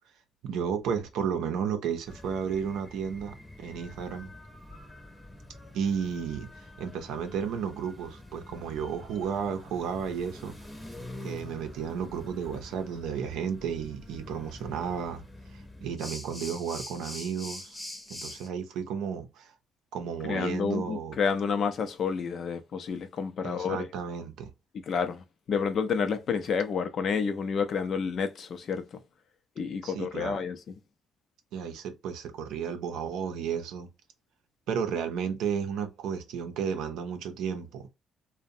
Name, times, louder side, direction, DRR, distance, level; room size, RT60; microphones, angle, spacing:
voice 1, 0.4-4.3 5.7-10.5 11.2-15.2 15.5-17.8 18.1-19.5 19.9-21.2 23.4-24.5 29.8-30.4 31.5-33.9 34.7-37.9, right 7 dB, 90° right, 0.5 m, -33 dB
sound 1, 2.0-18.5, left 1 dB, 20° left, 0.7 m, -45 dB
voice 2, 20.2-23.9 24.7-29.0 29.6-30.7, left 6 dB, 60° left, 0.5 m, -30 dB
2.6 x 2.1 x 2.6 m
cardioid pair, 90°, 0 cm